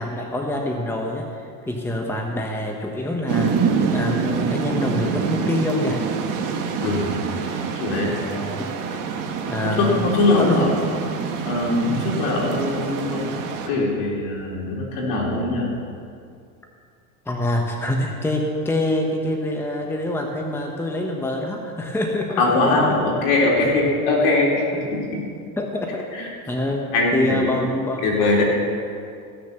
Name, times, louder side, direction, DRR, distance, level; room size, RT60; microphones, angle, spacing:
voice 1, 0.0-6.0 8.3-8.7 9.5-10.0 10.4-10.6 17.2-22.6 25.6-26.0 26.5-28.0, left 1 dB, 5° left, 1 dB, 1.2 m, -25 dB
sound 1, 3.3-13.7, right 5 dB, 45° right, 1.7 m, -26 dB
voice 2, 7.5-8.1 9.6-10.7 11.4-13.3 13.7-15.7 22.4-25.0 26.1-26.3 26.9-27.4 28.0-28.5, left 2 dB, 65° left, -3 dB, 3.9 m, -21 dB
16.0 x 6.6 x 6.8 m, 2.4 s
supercardioid pair, 105°, 43 cm